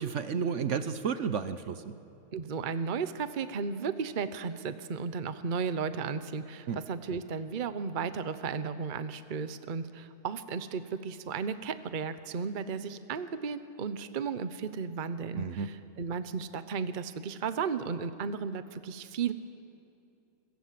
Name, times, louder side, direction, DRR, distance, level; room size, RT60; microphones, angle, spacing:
voice 1, 0.0-1.9 6.7-6.8 15.3-15.7, right 6 dB, 60° right, 11 dB, 1.1 m, -32 dB
voice 2, 2.3-19.3, right 5 dB, 40° right, 11 dB, 0.9 m, -34 dB
27.5 x 22.0 x 7.6 m, 2.6 s
omnidirectional pair, 1.5 m